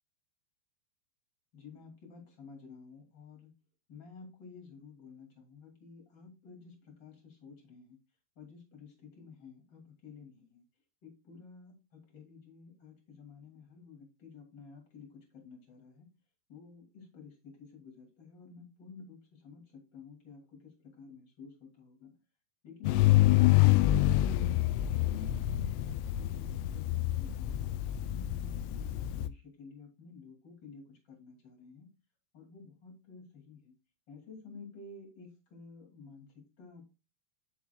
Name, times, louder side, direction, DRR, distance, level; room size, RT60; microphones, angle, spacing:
voice 1, 1.5-3.5 3.9-8.0 8.4-10.6 11.0-16.1 16.5-22.1 24.9-31.9 32.3-33.7 34.1-36.9, left 5 dB, 30° left, 2 dB, 2.6 m, -51 dB
sound 1, 22.8-29.3, left 15 dB, 85° left, 2.6 m, -27 dB
9.5 x 6.9 x 2.2 m, 0.29 s
omnidirectional pair, 4.9 m